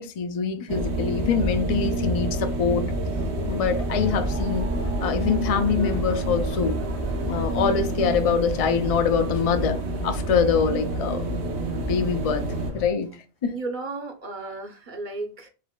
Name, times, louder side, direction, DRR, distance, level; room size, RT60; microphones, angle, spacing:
voice 1, 0.0-2.9 3.5-4.7 5.0-6.8 7.2-11.3 11.9-12.5 12.7-13.1 13.4-13.5, left 6 dB, 40° left, 0.6 m, -24 dB
sound 1, 0.7-12.7, right 1 dB, 80° right, 1.1 m, -28 dB
sound 2, 3.1-12.9, equal, 15° right, 0.8 m, -37 dB
voice 2, 13.5-15.5, right 3 dB, 50° right, 1.0 m, -34 dB
4.9 x 4.0 x 2.2 m
omnidirectional pair, 1.1 m